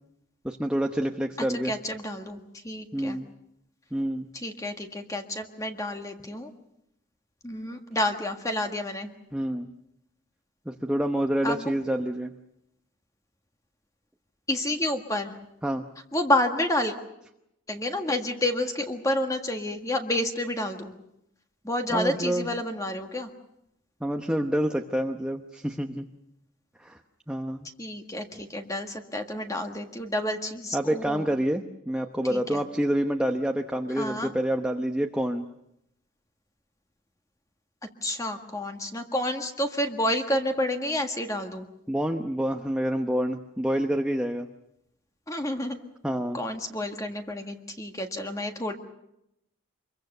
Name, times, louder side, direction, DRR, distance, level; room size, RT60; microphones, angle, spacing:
voice 1, 0.4-1.7 2.9-3.3 3.9-4.3 9.3-9.7 10.7-12.3 15.6-15.8 21.9-22.5 24.0-26.1 26.8-27.0 27.3-27.7 30.7-35.5 41.9-44.5 46.0-46.4, right 1 dB, 5° right, 4 dB, 0.9 m, -27 dB
voice 2, 1.4-3.2 4.3-6.5 7.4-9.1 11.4-11.7 14.5-15.3 16.1-16.9 17.7-20.9 21.6-23.3 27.8-31.3 32.3-32.6 34.0-34.3 38.0-41.7 45.3-45.8 46.3-48.7, left 1 dB, 15° left, 4 dB, 1.6 m, -29 dB
25.5 x 23.0 x 6.7 m, 0.81 s
head